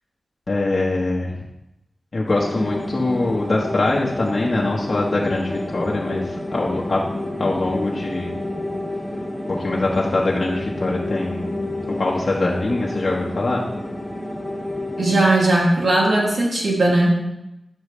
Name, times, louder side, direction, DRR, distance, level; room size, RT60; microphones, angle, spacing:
voice 1, 0.5-1.4 2.1-7.0 7.4-8.3 9.5-13.6, left 2 dB, 50° left, -4 dB, 1.3 m, -23 dB
sound 1, 2.2-15.3, left 1 dB, 10° left, 2.5 m, -29 dB
voice 2, 15.0-17.1, right 2 dB, 65° right, -3 dB, 2.6 m, -18 dB
9.5 x 7.0 x 3.3 m, 0.88 s
cardioid pair, 55°, 0 cm